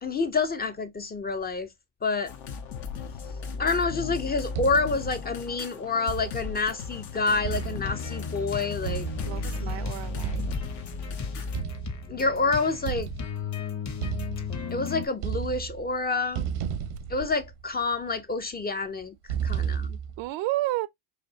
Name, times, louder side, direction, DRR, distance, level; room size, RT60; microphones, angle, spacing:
voice 1, 0.0-1.7 2.0-2.3 3.6-9.1 12.1-13.1 14.7-16.5 17.1-19.1 19.4-20.0, left 3 dB, 20° left, 0.4 m, -28 dB
sound 1, 2.3-11.7, left 5 dB, 70° left, 1.1 m, -37 dB
sound 2, 4.5-5.2 6.1-6.7 7.4-8.3 8.9-9.6 10.2-10.8 11.5-12.3 12.9-13.5 14.0-14.8 15.1-16.0 16.3-17.8 19.3-20.3, right 9 dB, 90° right, 0.9 m, -33 dB
sound 3, 7.4-15.1, left 4 dB, 35° left, 1.0 m, -35 dB
voice 2, 9.2-10.4 20.2-20.9, right 17 dB, 75° right, 0.6 m, -31 dB
4.9 x 2.7 x 2.6 m
cardioid pair, 105°, 46 cm